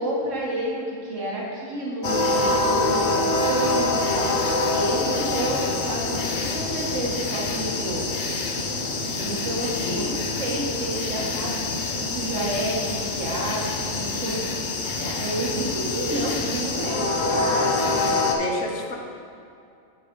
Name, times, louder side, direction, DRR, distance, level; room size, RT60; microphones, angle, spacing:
voice 1, 0.0-8.0 9.1-14.5 15.0-18.6, right 1 dB, 65° right, -4 dB, 1.6 m, -30 dB
sound 1, 2.0-18.3, left 3 dB, 50° left, 0.6 m, -25 dB
voice 2, 9.9-10.2 18.1-19.0, left 3 dB, 70° left, 1 dB, 1.2 m, -32 dB
9.2 x 5.0 x 3.8 m, 2.4 s
omnidirectional pair, 1.4 m